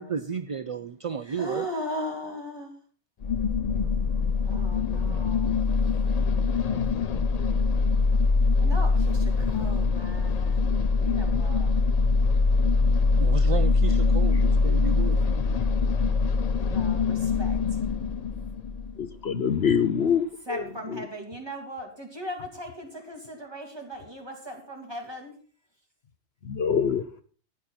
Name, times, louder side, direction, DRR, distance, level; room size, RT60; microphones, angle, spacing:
voice 1, 0.0-1.7 13.2-15.2, right 6 dB, 45° right, 0.4 m, -32 dB
voice 2, 1.2-2.7 4.4-5.9 8.6-11.7 16.6-17.8 20.5-25.4, equal, 20° right, 3.0 m, -38 dB
sound 1, 3.2-19.1, left 4 dB, 45° left, 0.6 m, -23 dB
voice 3, 19.0-20.6 20.9-21.0 26.4-27.0, left 7 dB, 65° left, 1.1 m, -25 dB
14.0 x 9.8 x 4.4 m
omnidirectional pair, 1.2 m